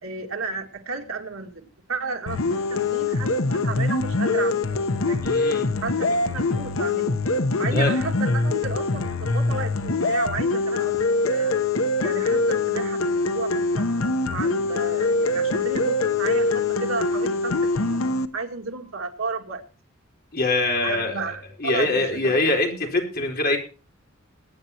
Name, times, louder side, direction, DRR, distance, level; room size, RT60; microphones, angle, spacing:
voice 1, 0.0-4.8 5.1-5.3 5.8-7.2 7.5-11.6 12.0-13.9 14.3-18.0 18.3-19.6 20.8-22.3, right 4 dB, 85° right, 4 dB, 2.1 m, -33 dB
sound 1, 2.3-18.3, left 3 dB, 85° left, 1.0 m, -23 dB
voice 2, 5.2-5.7 7.7-8.0 15.3-15.4 20.3-23.6, left 2 dB, 50° left, 1 dB, 4.1 m, -24 dB
22.5 x 9.8 x 2.9 m, 0.35 s
head